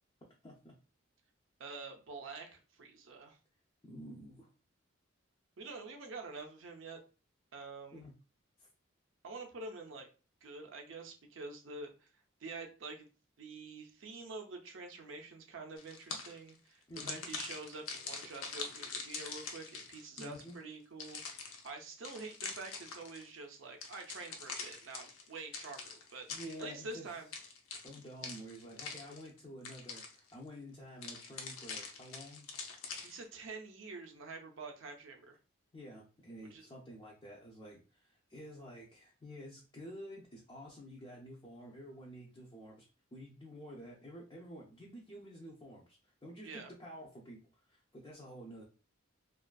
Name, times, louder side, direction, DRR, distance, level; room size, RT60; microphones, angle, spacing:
voice 1, 0.4-0.7 3.8-4.5 7.9-8.1 8.6-8.7 16.9-17.2 20.2-20.6 26.3-27.1 27.8-32.5 35.7-48.6, equal, 20° left, -3 dB, 0.4 m, -50 dB
voice 2, 1.6-3.4 5.6-7.0 7.5-8.0 9.2-10.1 10.4-12.1 12.4-13.1 13.4-26.3 26.6-27.3 33.0-35.4 36.5-36.6 46.4-46.7, right 3 dB, 70° right, 4 dB, 0.5 m, -47 dB
sound 1, 15.8-16.5 17.0-20.5 21.0-23.3 23.8-26.9 27.3-29.4 29.6-30.3 31.0-33.3, left 5 dB, 90° left, 0.5 m, -44 dB
2.5 x 2.3 x 2.2 m, 0.34 s
head